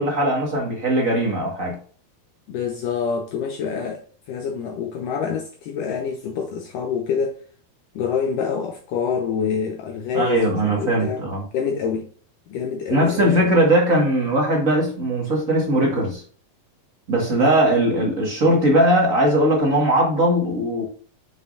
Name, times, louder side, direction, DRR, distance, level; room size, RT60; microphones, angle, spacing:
voice 1, 0.0-1.8 10.1-11.4 12.9-16.2 17.1-20.8, right 1 dB, 50° right, 0.9 m, -19 dB
voice 2, 2.5-4.0 4.3-7.4 8.0-11.2 11.5-12.1 12.5-13.5, left 6 dB, 70° left, 2.2 m, -26 dB
9.5 x 6.0 x 2.5 m
omnidirectional pair, 4.3 m